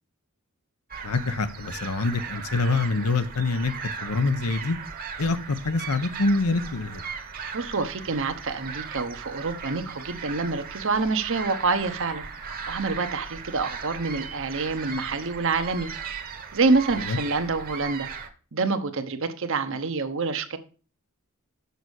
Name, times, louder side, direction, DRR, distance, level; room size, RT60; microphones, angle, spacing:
sound 1, 0.9-18.3, right 5 dB, 40° right, 1.1 m, -38 dB
voice 1, 1.0-4.8 5.2-7.0 17.1-17.2, left 3 dB, 85° left, 0.9 m, -25 dB
voice 2, 7.5-12.2 12.7-15.9 16.5-18.1 18.5-20.6, right 3 dB, 60° right, 0.9 m, -27 dB
6.8 x 5.4 x 6.3 m
head